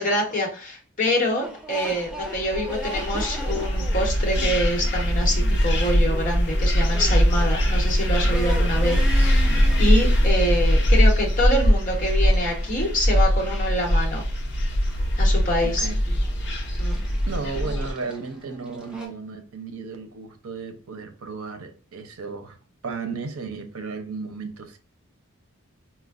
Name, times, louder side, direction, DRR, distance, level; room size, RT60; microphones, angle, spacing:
voice 1, 0.0-14.2 15.2-15.9 16.8-17.0, equal, 35° left, 1.0 m, -26 dB
sound 1, 1.4-19.1, equal, 5° right, 0.5 m, -40 dB
sound 2, 2.2-17.9, equal, 50° left, 0.6 m, -21 dB
voice 2, 15.6-16.0 17.3-22.6 22.8-24.8, right 4 dB, 75° right, 0.6 m, -34 dB
4.3 x 2.1 x 2.4 m
head